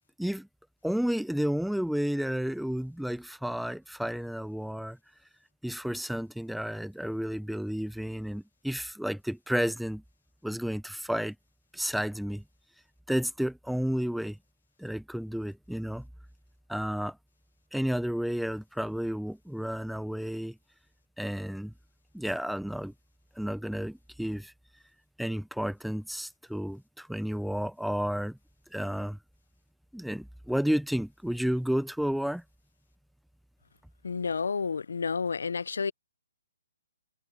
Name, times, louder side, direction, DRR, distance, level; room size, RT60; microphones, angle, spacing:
voice 1, 0.8-5.0 5.6-10.0 10.4-11.4 11.7-12.4 13.1-14.4 14.8-16.0 16.7-17.2 17.7-20.6 21.2-21.7 22.1-22.9 23.4-24.5 25.2-28.4 28.7-29.2 29.9-32.4, equal, ahead, 0.4 m, -31 dB
voice 2, 34.0-35.9, left 5 dB, 80° left, 0.4 m, -30 dB
hypercardioid pair, 165°, 0 cm